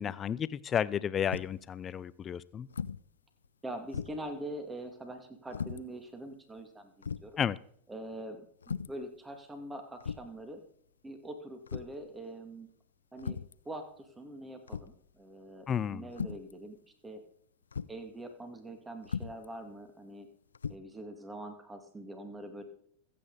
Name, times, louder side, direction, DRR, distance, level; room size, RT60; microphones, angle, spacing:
voice 1, 0.0-2.7 7.4-7.6 15.7-16.1, left 8 dB, 25° left, 19 dB, 0.6 m, -32 dB
sound 1, 1.3-1.7 2.7-3.1 3.4-3.5 3.9-4.3 5.5-5.8 6.6-6.7 7.0-7.3 8.6-9.0 10.0-10.4 11.7-12.0 13.2-13.6 14.7-15.0 16.1-16.5 17.7-18.0 19.0-19.5 20.5-20.7, left 6 dB, 70° left, 0.5 m, -38 dB
voice 2, 3.6-7.4 7.9-10.6 11.0-12.7 13.1-15.7 15.9-16.8 17.0-17.2 17.9-20.3 20.7-22.6, right 1 dB, 10° right, 6 dB, 2.3 m, -44 dB
25.0 x 8.6 x 4.1 m, 0.64 s
figure-of-eight pair, 90°, 0 cm